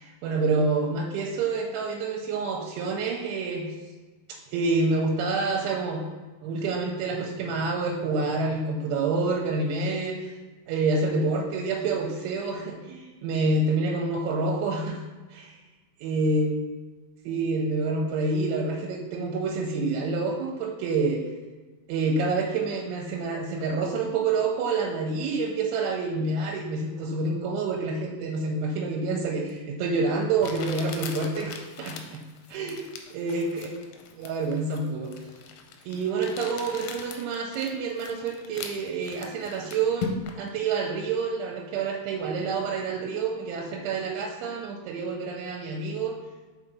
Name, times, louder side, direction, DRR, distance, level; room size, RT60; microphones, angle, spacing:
voice 1, 0.0-3.7 4.5-6.0 6.4-10.3 10.7-15.0 15.3-15.6 16.0-16.5 17.3-21.2 21.9-32.2 32.5-33.7 34.2-35.1 35.9-46.2, right 3 dB, 85° right, 0 dB, 3.0 m, -28 dB
Crumpling crinkling, 29.5-29.6 30.4-40.5, left 6 dB, 85° left, 2.9 m, -40 dB
5.9 x 4.9 x 4.0 m, 1.3 s
omnidirectional pair, 5.3 m